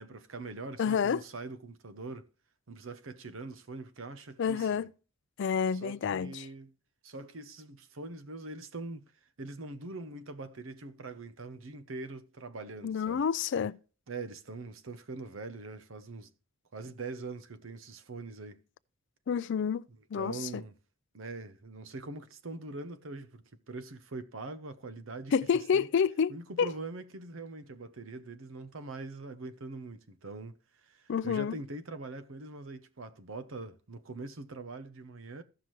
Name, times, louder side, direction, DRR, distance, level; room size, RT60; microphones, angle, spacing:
voice 1, 0.0-2.3 2.7-4.9 5.7-6.7 7.0-9.0 9.4-13.2 14.1-16.3 16.7-18.6 19.9-20.7 21.1-25.9 26.3-35.4, right 3 dB, 70° right, 0.8 m, -43 dB
voice 2, 0.8-1.2 4.4-4.9 5.4-6.5 12.8-13.8 19.3-19.8 20.1-20.4 25.3-26.3 26.6-26.7 31.1-31.6, left 6 dB, 60° left, 0.4 m, -28 dB
15.5 x 5.9 x 3.1 m
head